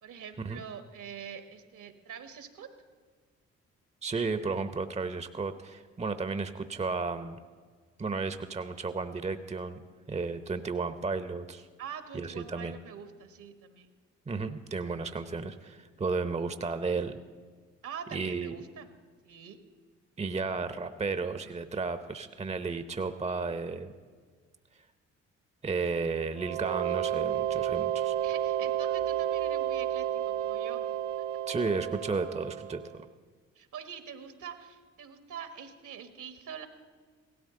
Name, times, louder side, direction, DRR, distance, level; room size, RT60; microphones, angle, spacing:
voice 1, 0.0-2.7 11.8-13.9 17.8-18.9 19.2-19.6 28.2-30.8 33.5-36.7, right 7 dB, 65° right, 8 dB, 1.5 m, -44 dB
voice 2, 4.0-7.4 8.0-9.8 10.1-11.7 12.1-12.7 14.3-17.1 18.1-18.6 20.2-23.9 25.6-28.1 31.5-33.1, right 4 dB, 20° right, 11 dB, 0.8 m, -33 dB
sound 1, 26.4-33.0, right 10 dB, 90° right, 0.5 m, -31 dB
17.0 x 13.0 x 3.8 m, 1.5 s
hypercardioid pair, 45°, 34 cm